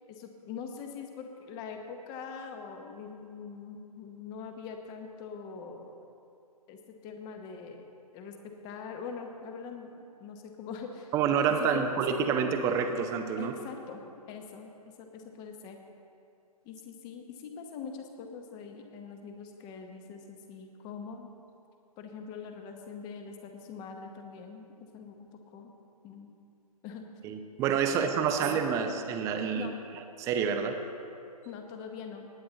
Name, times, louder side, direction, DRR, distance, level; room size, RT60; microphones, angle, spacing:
voice 1, 0.1-6.0 6.7-11.1 11.5-12.2 12.9-13.0 13.4-14.0 14.3-15.8 16.6-21.3 22.0-25.7 26.0-26.3 26.8-27.3 27.9-28.1 28.4-28.6 29.5-29.8 31.4-32.3, left 5 dB, 20° left, 5 dB, 1.0 m, -43 dB
voice 2, 11.1-13.5 27.2-29.7 30.2-30.8, right 7 dB, 15° right, 6 dB, 0.7 m, -28 dB
18.5 x 9.0 x 4.0 m, 2.6 s
figure-of-eight pair, 130°, 20 cm